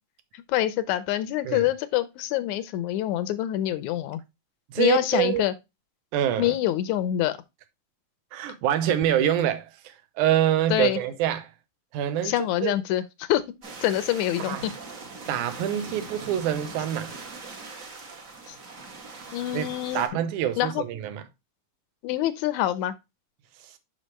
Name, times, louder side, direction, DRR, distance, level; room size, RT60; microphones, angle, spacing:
voice 1, 0.5-4.2 4.8-5.5 6.4-7.4 10.7-11.0 12.2-13.4 13.8-14.7 18.5-18.6 19.3-20.0 20.6-20.8 22.0-23.0, left 13 dB, 85° left, 2.0 m, -25 dB
voice 2, 4.7-5.5 6.1-6.5 8.3-11.5 11.9-12.8 14.4-14.7 15.3-17.1 19.5-21.2, right 11 dB, 85° right, 2.3 m, -26 dB
sound 1, 13.6-20.1, right 3 dB, 50° right, 1.0 m, -41 dB
6.4 x 5.8 x 3.1 m
omnidirectional pair, 3.4 m